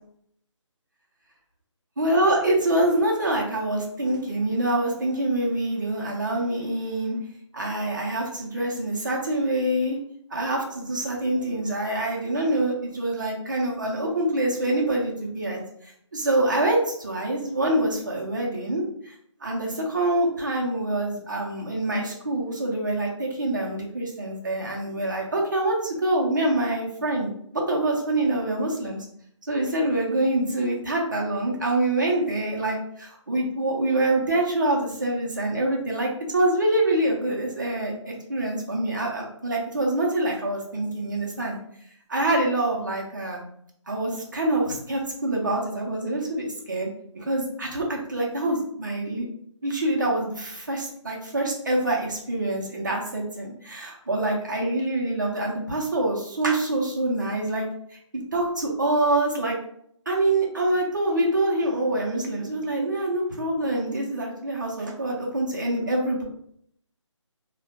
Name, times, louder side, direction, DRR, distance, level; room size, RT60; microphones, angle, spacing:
voice 1, 2.0-7.2 7.5-10.0 10.3-15.6 16.1-19.1 19.4-29.0 29.4-41.6 42.1-43.4 43.9-46.9 47.1-49.2 49.6-58.0 58.3-59.6 60.1-66.2, right 1 dB, 40° right, -1 dB, 0.6 m, -25 dB
2.3 x 2.1 x 2.8 m, 0.68 s
figure-of-eight pair, 175°, 16 cm